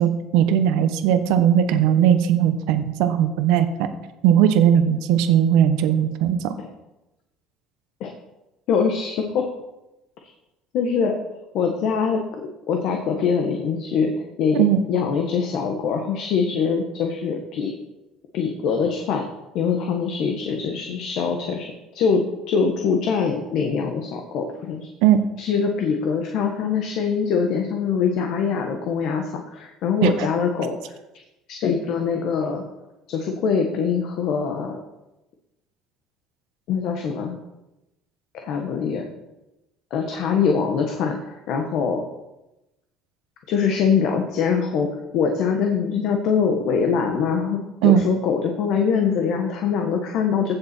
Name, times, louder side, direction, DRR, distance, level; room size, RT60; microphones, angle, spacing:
voice 1, 0.0-3.9 4.2-6.5 14.5-14.8 25.0-25.2 30.0-30.3 47.8-48.0, right 9 dB, 80° right, 9 dB, 1.0 m, -18 dB
voice 2, 8.7-9.4 10.7-11.2 11.5-12.2 12.7-14.1 14.4-14.6 14.9-17.7 18.3-19.3 19.5-24.9 25.4-30.8 31.5-32.6 33.1-34.8 36.7-37.4 38.3-39.1 39.9-42.1 43.5-50.6, left 6 dB, 55° left, 3 dB, 1.3 m, -23 dB
15.5 x 6.9 x 4.4 m, 0.97 s
cardioid pair, 165°, 0 cm